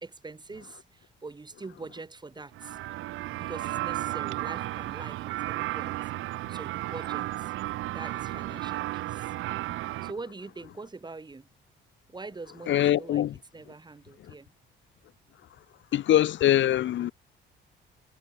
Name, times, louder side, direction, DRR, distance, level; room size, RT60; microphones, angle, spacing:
voice 1, 0.0-2.8 3.4-6.0 6.5-7.5 7.9-9.3 10.0-11.5 12.1-13.2 13.5-14.5, right 3 dB, 20° right, 1.6 m, -43 dB
sound 1, 2.5-10.1, right 17 dB, 85° right, 0.6 m, -33 dB
voice 2, 12.7-13.3 14.2-14.3 15.9-17.1, left 12 dB, 70° left, 1.1 m, -23 dB
cardioid pair, 90°, 20 cm